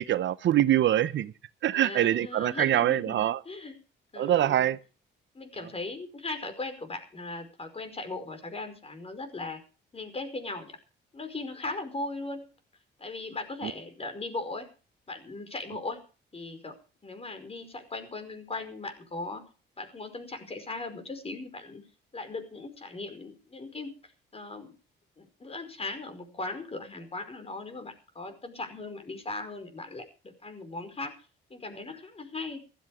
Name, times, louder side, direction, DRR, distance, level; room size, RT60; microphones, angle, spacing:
voice 1, 0.0-1.3 1.6-3.4 4.2-4.8, right 12 dB, 70° right, 0.9 m, -24 dB
voice 2, 1.7-3.8 4.1-4.7 5.3-9.6 9.9-10.8 11.1-12.5 13.0-14.7 15.1-16.0 16.3-16.8 17.0-19.4 19.8-21.8 22.1-24.7 25.2-32.6, left 3 dB, 30° left, 5.2 m, -38 dB
15.5 x 13.5 x 4.9 m
cardioid pair, 90°, 20 cm